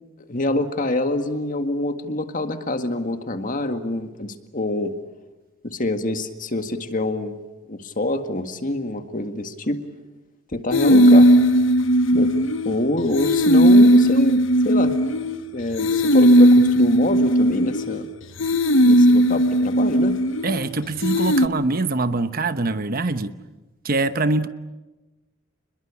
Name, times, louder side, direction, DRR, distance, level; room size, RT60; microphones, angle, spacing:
voice 1, 0.3-4.9 5.6-7.4 7.7-9.8 10.5-11.3 12.1-12.4 12.7-15.0 15.5-18.1 18.8-20.2, left 1 dB, 40° left, 7 dB, 1.9 m, -26 dB
sound 1, 10.7-12.8 13.1-15.4 15.8-18.0 18.4-20.6 21.0-21.5, equal, 70° left, 1.1 m, -16 dB
voice 2, 20.4-23.3 23.8-24.5, right 3 dB, 45° right, 11 dB, 1.0 m, -23 dB
29.5 x 21.5 x 8.5 m, 1.1 s
head